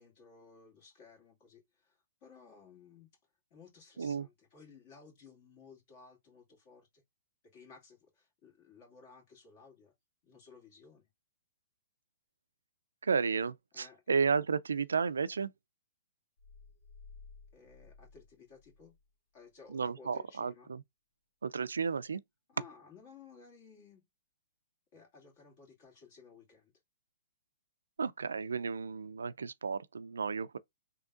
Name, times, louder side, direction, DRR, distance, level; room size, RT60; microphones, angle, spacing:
voice 1, 0.0-3.1 3.5-7.0 7.4-9.9 10.2-11.1 13.7-14.0 17.5-19.0 19.3-20.7 22.5-24.1 24.9-26.7, left 5 dB, 40° left, 2.2 m, -57 dB
voice 2, 13.0-15.5 19.7-20.8 21.4-22.2 28.0-30.6, right 5 dB, 90° right, 0.3 m, -33 dB
sound 1, 16.4-19.1, left 4 dB, 60° left, 1.0 m, -56 dB
3.7 x 2.8 x 2.4 m
hypercardioid pair, 140°, 0 cm